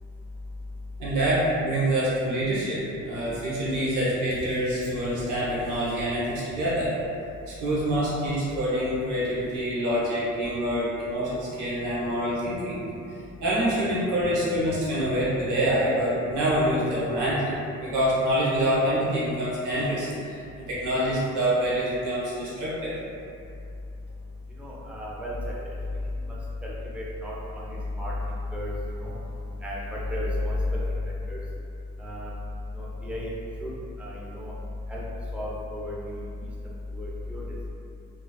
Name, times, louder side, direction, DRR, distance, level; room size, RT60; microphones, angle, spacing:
voice 1, 1.0-6.9 7.5-12.8 13.4-17.5 17.8-23.0, equal, 80° right, -8 dB, 0.8 m, -26 dB
voice 2, 24.6-25.6 26.6-28.1 28.5-28.7 29.0-29.2 29.6-30.6 31.3-31.4 32.0-32.3 32.7-33.3 33.6-33.7 34.0-34.5 34.9-35.0 35.3-36.2 36.9-37.4, left 1 dB, 5° right, -6 dB, 0.4 m, -33 dB
2.6 x 2.2 x 2.2 m, 2.6 s
cardioid pair, 90°, 30 cm